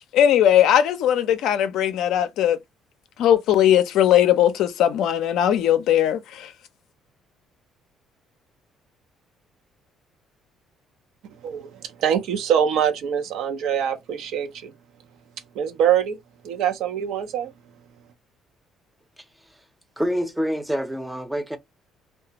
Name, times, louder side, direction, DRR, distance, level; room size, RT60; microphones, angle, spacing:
voice 1, 0.1-2.6 3.2-6.5, left 10 dB, 75° left, 0.4 m, -19 dB
voice 2, 11.4-14.7 15.5-16.2 16.4-17.5, right 9 dB, 75° right, 0.6 m, -24 dB
voice 3, 20.0-21.6, equal, 5° right, 0.6 m, -26 dB
2.4 x 2.3 x 2.8 m
cardioid pair, 90°, 0 cm